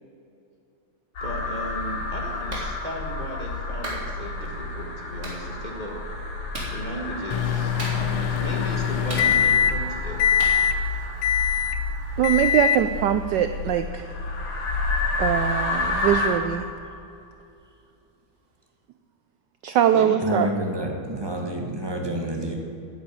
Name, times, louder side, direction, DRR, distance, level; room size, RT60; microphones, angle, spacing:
sound 1, 1.2-16.3, left 3 dB, 60° left, 2.7 m, -30 dB
voice 1, 1.2-6.0 6.7-10.5 19.9-20.3 21.3-21.4, equal, 25° left, 0 dB, 1.2 m, -36 dB
Clapping, 2.5-2.7 3.8-4.0 5.2-5.4 6.5-6.7 7.8-8.2 9.1-9.7 10.4-10.6, right 1 dB, 30° right, 2.8 m, -34 dB
Microwave oven, 7.3-9.9 10.2-10.8 11.2-11.8 12.2-12.9, left 9 dB, 85° left, 1.5 m, -22 dB
voice 2, 12.2-14.1 15.2-16.6 19.6-20.5, right 10 dB, 85° right, 10 dB, 0.9 m, -22 dB
voice 3, 20.2-22.5, right 1 dB, 15° right, 1 dB, 0.9 m, -28 dB
9.8 x 8.7 x 8.6 m, 2.7 s
omnidirectional pair, 2.4 m